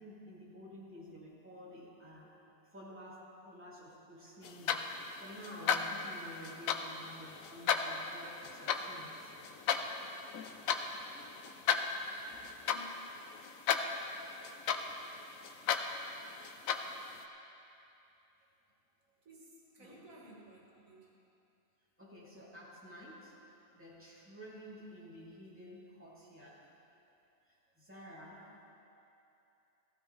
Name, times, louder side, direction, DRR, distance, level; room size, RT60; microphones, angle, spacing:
voice 1, 0.0-2.3 2.7-9.3 12.3-12.5 19.8-19.9 22.0-23.4 23.7-26.7 27.5-28.7, equal, 10° right, -8 dB, 2.8 m, -51 dB
sound 1, 4.4-17.2, left 7 dB, 90° left, 1.1 m, -36 dB
voice 2, 12.7-13.2 19.2-21.1, equal, 90° right, -2 dB, 2.2 m, -56 dB
16.0 x 15.0 x 3.2 m, 2.8 s
omnidirectional pair, 1.4 m